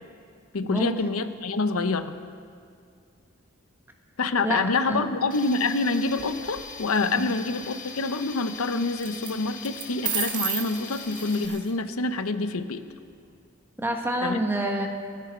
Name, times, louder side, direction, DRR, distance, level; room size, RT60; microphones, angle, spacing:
voice 1, 0.5-2.2 4.2-12.8 14.2-14.4, left 3 dB, 80° left, 10 dB, 0.8 m, -26 dB
voice 2, 4.4-5.1 7.2-7.3 13.8-14.9, right 1 dB, 10° right, 2 dB, 1.4 m, -27 dB
Tools, 5.3-11.5, left 5 dB, 40° left, 1.7 m, -41 dB
sound 1, 6.1-6.6 9.0-9.3 9.6-11.7, right 8 dB, 40° right, 1.6 m, -32 dB
28.5 x 10.5 x 4.5 m, 2.3 s
head